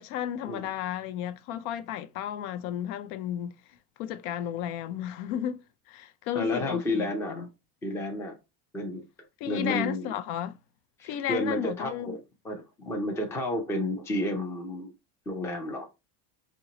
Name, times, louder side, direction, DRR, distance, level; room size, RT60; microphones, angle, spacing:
voice 1, 0.0-3.6 4.0-5.6 5.9-7.5 9.4-10.6 11.0-12.1, left 10 dB, 75° left, 0.6 m, -33 dB
voice 2, 6.3-7.5 7.8-8.4 8.7-9.0 9.5-10.1 11.0-12.2 12.4-14.9 15.3-15.9, left 1 dB, 5° left, 0.3 m, -31 dB
4.4 x 2.9 x 2.8 m
cardioid pair, 165°, 44 cm